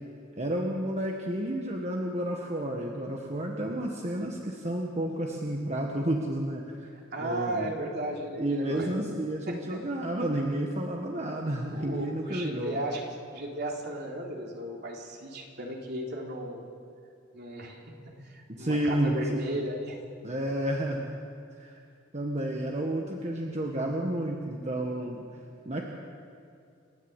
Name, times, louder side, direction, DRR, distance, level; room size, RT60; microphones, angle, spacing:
voice 1, 0.4-6.9 7.2-7.7 8.4-12.8 18.6-19.6 20.2-21.1 21.6-21.8 22.1-25.2 25.6-25.9, right 1 dB, 35° right, 0 dB, 1.5 m, -31 dB
voice 2, 7.1-8.9 9.5-9.8 11.7-13.0 13.3-16.7 17.3-17.8 18.2-20.0, right 1 dB, 55° right, -1 dB, 3.5 m, -35 dB
29.5 x 11.5 x 8.3 m, 2.4 s
head